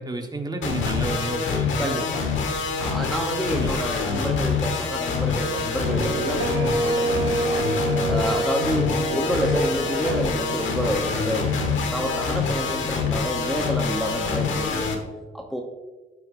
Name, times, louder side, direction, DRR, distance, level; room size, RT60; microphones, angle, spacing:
voice 1, 0.0-2.0 2.8-2.9 3.5-3.7, right 1 dB, 20° right, 4 dB, 1.1 m, -31 dB
sound 1, 0.6-14.9, left 5 dB, 75° left, 1.3 m, -26 dB
voice 2, 1.8-2.3 2.8-7.8 8.1-11.6 11.9-15.0 15.3-15.6, equal, ahead, 1 dB, 0.8 m, -29 dB
sound 2, 5.9-12.3, right 2 dB, 80° right, 1.2 m, -28 dB
11.5 x 6.4 x 2.6 m, 1.3 s
cardioid pair, 90°, 20 cm